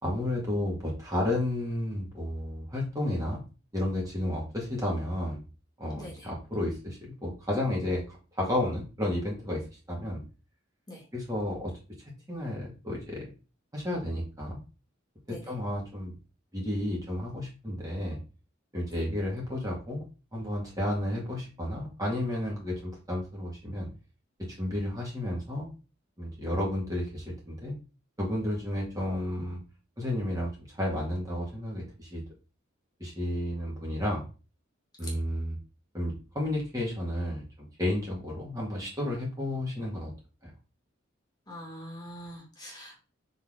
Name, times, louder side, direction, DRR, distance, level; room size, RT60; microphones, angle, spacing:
voice 1, 0.0-3.4 3.7-5.4 5.8-10.2 11.1-11.7 12.3-13.3 13.7-14.6 15.3-16.1 16.5-18.2 18.7-20.0 20.3-23.9 24.6-25.7 26.2-27.8 28.2-29.6 30.0-32.2 33.0-34.2 35.0-35.6 35.9-40.1 40.4-40.5, left 1 dB, 20° right, -3 dB, 1.9 m, -32 dB
voice 2, 6.0-6.3 10.9-11.0 15.3-15.5 18.9-19.0 35.0-35.1 41.5-43.0, equal, 20° left, -1 dB, 2.2 m, -43 dB
6.0 x 4.2 x 3.7 m, 0.33 s
head